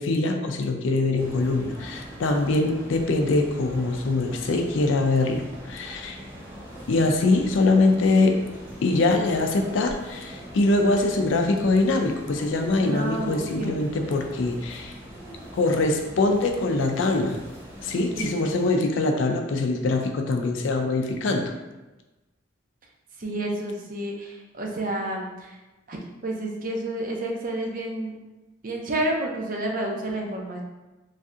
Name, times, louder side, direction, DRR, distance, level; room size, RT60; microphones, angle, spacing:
voice 1, 0.0-6.2 6.9-8.4 8.8-14.9 15.5-17.4 17.8-21.5, left 2 dB, 75° left, 4 dB, 0.4 m, -23 dB
sound 1, 1.2-18.7, equal, 15° right, 0.8 m, -42 dB
voice 2, 12.8-13.9 18.2-18.5 23.2-25.6 25.9-28.2 28.6-30.6, right 1 dB, 45° right, 0 dB, 0.5 m, -30 dB
3.2 x 2.6 x 2.4 m, 1.1 s
head